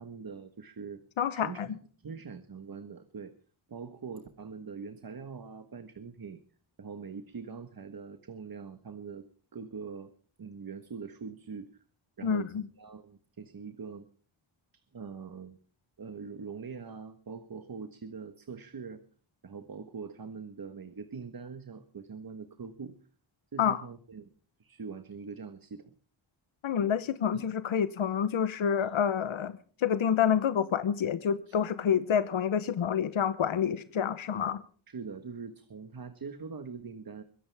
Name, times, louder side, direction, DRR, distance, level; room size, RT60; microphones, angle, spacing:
voice 1, 0.0-1.0 1.3-3.3 3.7-6.4 6.8-9.3 9.5-10.1 10.4-11.8 12.2-14.1 14.7-15.6 16.0-19.0 19.4-23.0 23.5-24.3 24.6-25.9 26.8-26.9 27.3-27.5 28.8-28.9 31.5-31.6 34.4-34.5 34.9-37.2, right 5 dB, 50° right, 10 dB, 1.4 m, -43 dB
voice 2, 1.2-1.7 12.2-12.6 23.6-23.8 26.6-34.6, left 8 dB, 90° left, 13 dB, 1.0 m, -28 dB
22.5 x 16.5 x 3.5 m, 0.43 s
wide cardioid pair, 105°, 46 cm